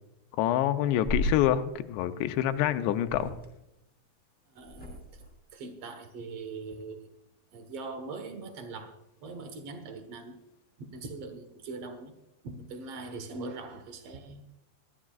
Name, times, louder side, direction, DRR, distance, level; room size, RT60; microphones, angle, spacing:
voice 1, 0.4-3.3, left 12 dB, 85° left, 9 dB, 3.0 m, -26 dB
sound 1, 1.0-1.4 2.5-2.7 3.0-3.5 4.6-5.3, equal, ahead, 3.0 m, -34 dB
voice 2, 4.5-5.2 5.5-7.1 7.5-8.9 9.2-10.4 10.8-12.1 12.4-14.5, right 3 dB, 85° right, 7 dB, 1.3 m, -41 dB
22.0 x 15.0 x 2.4 m, 0.86 s
omnidirectional pair, 5.0 m